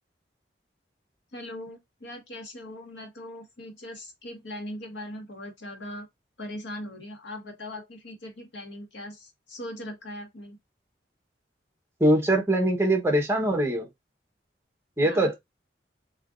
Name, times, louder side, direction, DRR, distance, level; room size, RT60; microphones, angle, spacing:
voice 1, 1.3-6.1 6.4-10.6 15.0-15.3, left 1 dB, 85° left, 1.9 m, -40 dB
voice 2, 12.0-13.9 15.0-15.3, right 1 dB, 15° right, 1.1 m, -22 dB
6.8 x 3.0 x 2.6 m
head